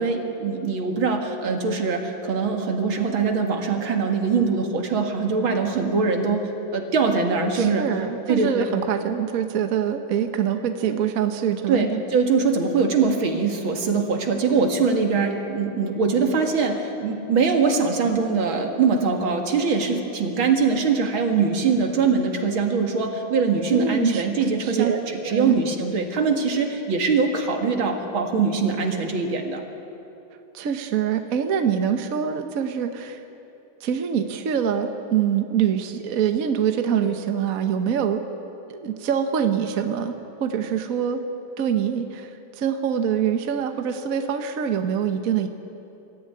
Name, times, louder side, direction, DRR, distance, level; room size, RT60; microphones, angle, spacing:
voice 1, 0.0-7.9 8.3-8.7 11.7-29.6, right 5 dB, 75° right, 3 dB, 2.7 m, -22 dB
voice 2, 7.5-12.0 23.7-25.0 25.2-25.6 30.5-33.2 33.8-38.2 38.7-41.2 41.6-42.3 42.6-45.5, right 8 dB, 50° right, 7 dB, 1.3 m, -24 dB
24.5 x 14.0 x 9.6 m, 2.9 s
omnidirectional pair, 2.2 m